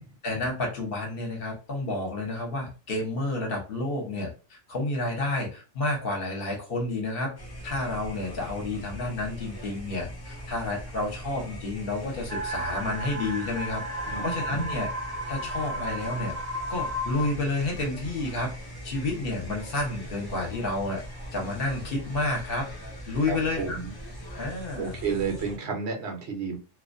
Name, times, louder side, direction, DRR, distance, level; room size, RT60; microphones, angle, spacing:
voice 1, 0.2-7.4 7.6-13.8 14.2-14.9 15.3-16.3 16.7-18.5 18.8-21.0 21.3-22.7 23.1-23.8 24.4-25.0, left 2 dB, 55° left, 0 dB, 0.9 m, -30 dB
sound 1, 7.4-25.6, equal, 30° left, 0.4 m, -41 dB
sound 2, 12.3-17.3, equal, 45° right, 0.5 m, -34 dB
voice 2, 14.1-14.8 23.3-23.9 24.8-26.6, right 5 dB, 65° right, 2 dB, 0.8 m, -31 dB
2.3 x 2.1 x 2.5 m, 0.32 s
omnidirectional pair, 1.3 m